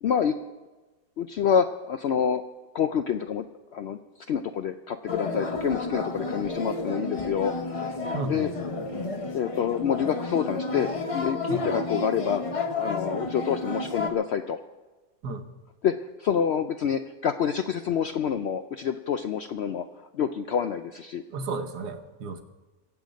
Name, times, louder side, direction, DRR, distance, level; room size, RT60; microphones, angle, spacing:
voice 1, 0.0-0.4 1.2-2.4 2.7-3.4 3.7-4.0 4.3-8.0 8.3-8.5 8.9-9.1 9.3-12.4 12.7-14.6 15.8-19.9 20.1-21.2, left 8 dB, 75° left, 9 dB, 0.6 m, -27 dB
sound 1, 5.1-14.1, left 3 dB, 30° left, 0.6 m, -31 dB
voice 2, 8.1-8.4 11.5-11.6 15.2-15.4 21.3-22.4, right 3 dB, 90° right, 8 dB, 1.6 m, -33 dB
22.5 x 7.9 x 5.2 m, 1.2 s
omnidirectional pair, 1.6 m